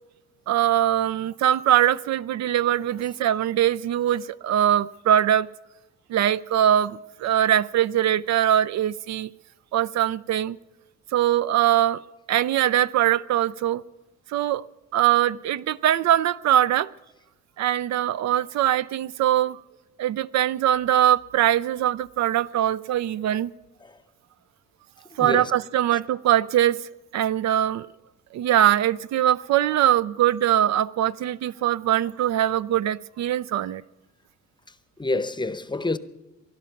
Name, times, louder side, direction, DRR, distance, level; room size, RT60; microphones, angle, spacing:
voice 1, 0.5-5.5 6.1-9.3 9.7-10.6 11.1-12.0 12.3-13.8 14.3-14.6 14.9-16.9 17.6-19.6 20.0-23.5 25.2-26.8 27.1-27.9 28.3-33.8, right 11 dB, 65° right, 0.4 m, -22 dB
voice 2, 25.2-25.5 25.9-26.0 35.0-36.0, left 2 dB, 15° left, 0.7 m, -27 dB
21.0 x 11.5 x 5.8 m
cardioid pair, 90°, 30 cm